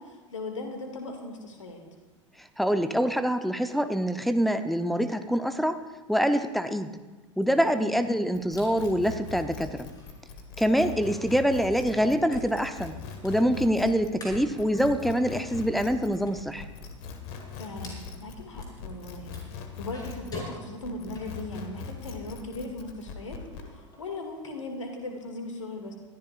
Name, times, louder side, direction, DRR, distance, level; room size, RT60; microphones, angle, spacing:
voice 1, 0.0-1.8 7.7-8.0 17.6-19.4 19.8-25.9, left 2 dB, 75° left, 4 dB, 2.2 m, -38 dB
voice 2, 2.6-5.8 6.1-6.9 7.4-9.9 10.6-13.0 13.2-16.6, equal, ahead, 10 dB, 0.7 m, -25 dB
sound 1, 7.4-22.5 22.9-24.6, left 1 dB, 25° left, 4.9 m, -50 dB
sound 2, 8.3-20.5 20.8-23.7, left 6 dB, 55° left, 1.7 m, -41 dB
23.0 x 14.0 x 2.5 m, 1.2 s
figure-of-eight pair, 80°, 16 cm